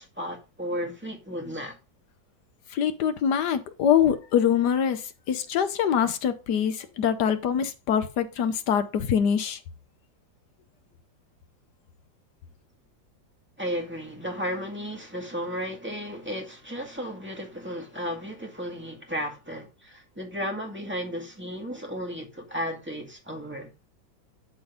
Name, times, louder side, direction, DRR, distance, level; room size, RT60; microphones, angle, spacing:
voice 1, 0.0-1.8 13.6-23.7, equal, 5° right, 1.8 m, -34 dB
voice 2, 2.7-9.6, left 8 dB, 65° left, 1.4 m, -24 dB
11.5 x 3.9 x 5.1 m
omnidirectional pair, 2.1 m